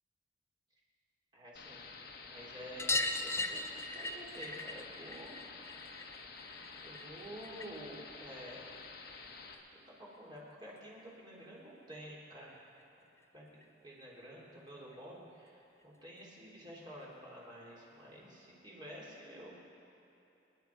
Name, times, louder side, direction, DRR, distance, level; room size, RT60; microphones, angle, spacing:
voice 1, 1.3-1.9 2.2-5.4 6.8-8.7 9.9-12.6 13.3-13.4 13.8-19.5, equal, 25° right, -5 dB, 3.5 m, -50 dB
sound 1, 1.6-9.6, left 4 dB, 55° left, 1.4 m, -50 dB
sound 2, 2.8-7.9 8.2-9.3 10.7-10.8 11.0-11.1 11.4-11.5 12.8-12.9 13.2-13.3 13.6-13.7 14.9-15.0 15.8-15.9, left 2 dB, 15° left, 0.5 m, -39 dB
27.5 x 10.5 x 4.7 m, 2.8 s
head